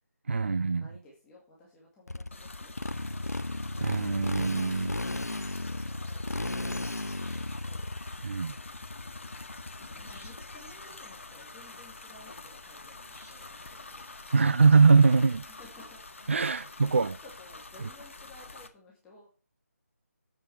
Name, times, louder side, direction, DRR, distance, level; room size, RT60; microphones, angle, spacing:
voice 1, 0.3-0.8 3.8-4.9 8.2-8.6 14.3-15.4 16.3-17.1, right 4 dB, 50° right, 0.5 m, -22 dB
voice 2, 0.8-3.4 5.8-7.9 9.8-14.1 15.5-16.0 16.5-19.3, left 2 dB, 10° left, 2.3 m, -55 dB
Motorcycle, 2.1-10.7, left 2 dB, 80° left, 0.7 m, -35 dB
sound 1, 2.3-18.7, left 3 dB, 55° left, 1.8 m, -47 dB
sound 2, 7.2-7.6 10.1-10.6 13.1-13.6, right 1 dB, 15° right, 6.5 m, -59 dB
9.4 x 8.5 x 4.6 m
figure-of-eight pair, 150°, 8 cm